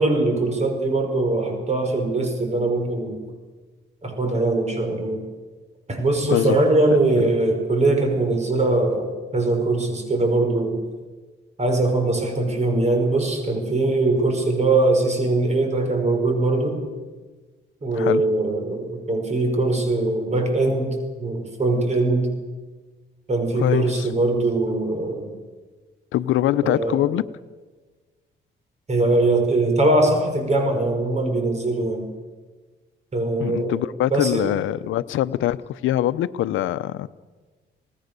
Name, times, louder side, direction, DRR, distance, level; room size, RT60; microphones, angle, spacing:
voice 1, 0.0-3.2 4.0-5.2 5.9-10.8 11.6-16.8 17.8-22.3 23.3-25.3 26.6-27.0 28.9-32.1 33.1-33.8 34.1-34.5, right 2 dB, 35° right, 5 dB, 5.5 m, -21 dB
voice 2, 23.6-24.1 26.1-27.2 33.4-37.1, left 13 dB, 80° left, 15 dB, 0.8 m, -23 dB
27.5 x 18.5 x 6.9 m, 1.3 s
cardioid pair, 90°, 20 cm